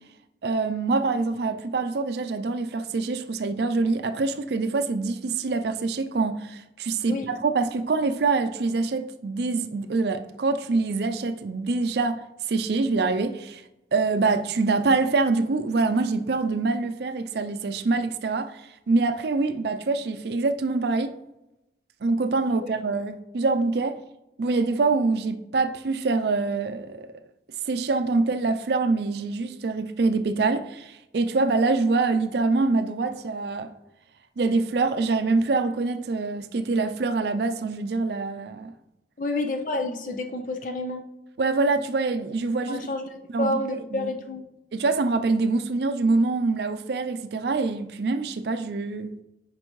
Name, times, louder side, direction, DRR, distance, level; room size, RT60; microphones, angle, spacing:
voice 1, 0.4-12.2 12.5-13.6 13.9-21.2 22.0-24.0 24.4-27.1 27.7-33.7 34.4-38.7 41.4-42.8 43.3-43.6 43.9-44.1 44.7-49.1, right 3 dB, 65° right, 0.4 m, -25 dB
voice 2, 39.2-41.0 42.7-44.4, left 2 dB, 45° left, 0.6 m, -29 dB
7.8 x 5.3 x 3.1 m
head